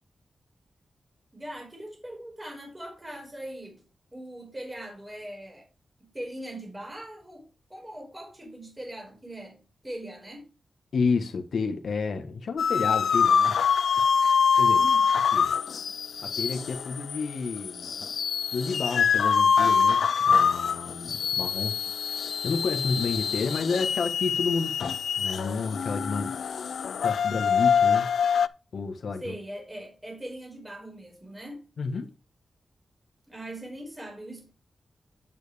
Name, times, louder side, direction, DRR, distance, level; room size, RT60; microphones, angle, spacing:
voice 1, 1.3-3.8 4.1-5.7 6.0-10.5 14.8-15.1 29.2-31.7 33.3-34.5, right 1 dB, 15° right, 4.9 m, -41 dB
voice 2, 10.9-13.7 14.1-14.3 14.6-14.8 15.3-15.5 16.2-18.0 18.5-21.8 22.1-26.7 27.0-28.1 28.7-29.4 31.8-32.1, left 4 dB, 75° left, 1.2 m, -31 dB
sound 1, 12.6-28.5, left 6 dB, 90° left, 0.4 m, -25 dB
9.0 x 8.7 x 3.4 m
wide cardioid pair, 100°, 0 cm